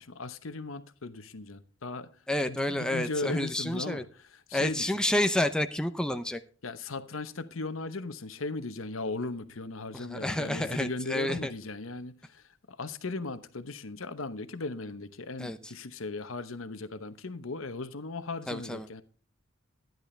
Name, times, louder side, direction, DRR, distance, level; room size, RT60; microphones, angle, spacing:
voice 1, 0.0-4.9 6.6-19.0, left 3 dB, 85° left, 1.0 m, -37 dB
voice 2, 2.3-4.0 4.5-6.4 9.9-11.5 15.4-15.6 18.5-18.9, left 1 dB, 5° left, 0.7 m, -29 dB
12.5 x 10.5 x 3.3 m
head